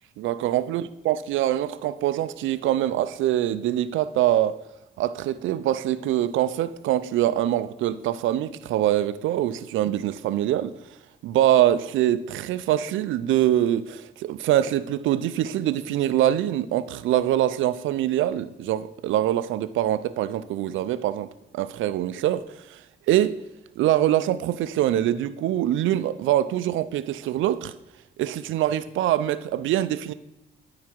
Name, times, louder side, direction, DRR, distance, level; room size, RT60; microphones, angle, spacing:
voice 1, 0.2-4.6 5.0-10.7 11.2-23.4 23.8-27.7 28.2-30.1, right 12 dB, 80° right, 0.4 m, -24 dB
11.0 x 4.8 x 4.5 m
cardioid pair, 90°, 20 cm